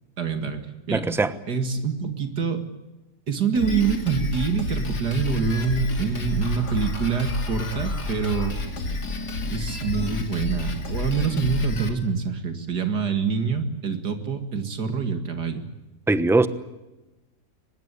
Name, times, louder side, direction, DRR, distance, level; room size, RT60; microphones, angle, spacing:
voice 1, 0.2-0.6 0.9-1.1 1.5-2.6 3.3-8.5 9.5-15.7, right 5 dB, 85° right, 7 dB, 2.8 m, -25 dB
voice 2, 0.9-1.3 16.1-16.5, right 2 dB, ahead, 12 dB, 0.9 m, -20 dB
Drum kit, 3.5-11.9, left 3 dB, 85° left, 3.3 m, -30 dB
24.0 x 21.0 x 8.4 m, 1.0 s
omnidirectional pair, 1.7 m